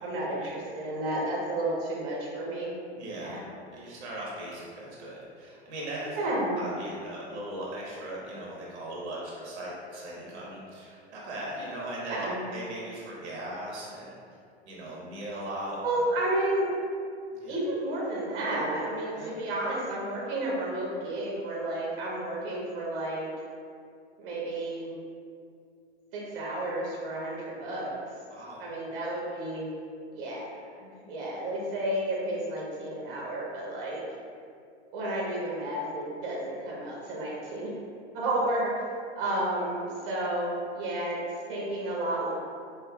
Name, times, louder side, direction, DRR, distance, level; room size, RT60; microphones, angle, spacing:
voice 1, 0.0-2.7 3.2-3.4 6.2-6.7 12.1-12.4 15.8-16.7 17.5-23.3 24.2-24.9 26.1-27.9 28.6-29.7 30.1-34.0 34.9-37.7 38.1-38.7 39.2-41.2 41.5-42.3, right 1 dB, 50° right, -5 dB, 1.2 m, -31 dB
voice 2, 2.9-3.4 3.7-6.2 6.6-14.2 14.7-16.0 17.3-17.6 19.1-19.3 28.3-28.6, right 1 dB, 75° right, -5 dB, 1.3 m, -38 dB
5.7 x 2.9 x 2.3 m, 2.3 s
hypercardioid pair, 110°, 35 cm